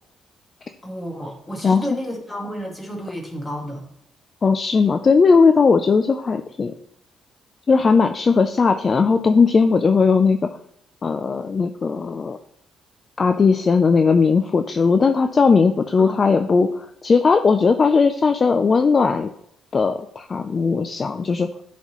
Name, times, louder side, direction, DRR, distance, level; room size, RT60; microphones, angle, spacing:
voice 1, 0.8-3.8 16.0-16.2, equal, 15° left, -1 dB, 2.1 m, -31 dB
voice 2, 4.4-6.7 7.7-10.5 11.0-12.4 13.2-19.3 19.7-21.5, left 4 dB, 40° left, 7 dB, 0.4 m, -18 dB
11.0 x 4.1 x 3.1 m, 0.73 s
cardioid pair, 90°, 0 cm